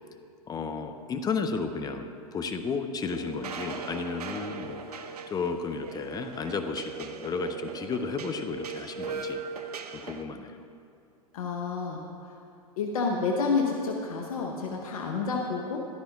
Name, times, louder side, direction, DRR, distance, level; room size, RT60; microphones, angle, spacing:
voice 1, 0.5-9.4 9.9-10.6, left 4 dB, 20° left, 8 dB, 0.7 m, -33 dB
sound 1, 3.1-10.2, right 5 dB, 80° right, 0.7 m, -39 dB
voice 2, 11.3-12.4 12.8-15.9, left 4 dB, 65° left, 1 dB, 1.1 m, -29 dB
15.0 x 12.0 x 2.4 m, 2.5 s
hypercardioid pair, 100°, 19 cm